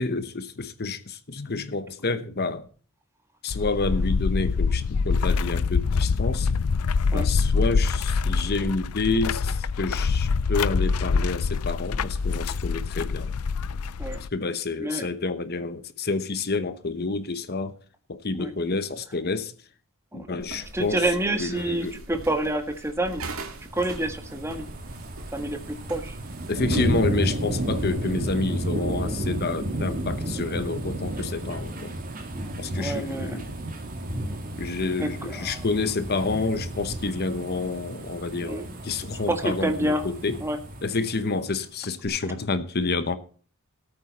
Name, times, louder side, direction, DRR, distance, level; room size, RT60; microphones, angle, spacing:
voice 1, 0.0-2.7 3.4-6.5 7.1-13.3 14.3-17.7 18.1-19.5 20.1-21.1 21.4-21.9 26.5-31.9 32.6-33.6 34.6-40.4 40.8-43.2, left 3 dB, 45° left, 1.0 m, -29 dB
sound 1, 3.5-14.3, left 4 dB, 85° left, 0.5 m, -25 dB
voice 2, 14.8-15.1 18.4-18.5 20.7-23.2 23.7-24.6 25.3-26.2 32.3-33.4 35.0-35.6 38.4-38.8 39.3-40.0 40.4-40.6, right 1 dB, 10° right, 1.6 m, -28 dB
sound 2, 20.4-29.3, right 2 dB, 65° right, 2.4 m, -42 dB
sound 3, 23.5-41.6 42.0-42.1, right 1 dB, 40° right, 3.0 m, -32 dB
18.0 x 8.8 x 4.2 m
head